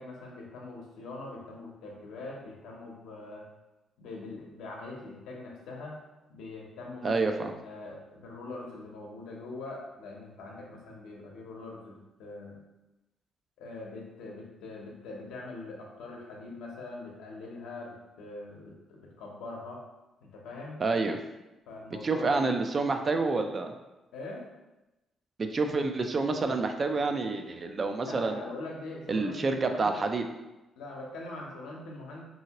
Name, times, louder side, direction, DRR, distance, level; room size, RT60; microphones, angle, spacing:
voice 1, 0.0-3.5 4.0-6.0 6.3-12.6 13.6-19.8 20.2-20.8 21.7-22.5 24.1-24.4 28.0-30.0 30.8-32.2, left 2 dB, 90° left, -2 dB, 0.7 m, -43 dB
voice 2, 7.0-7.5 20.8-21.2 22.0-23.7 25.4-28.4 29.1-30.2, right 3 dB, 40° right, 6 dB, 0.3 m, -28 dB
2.8 x 2.7 x 2.8 m, 1.0 s
cardioid pair, 90°, 0 cm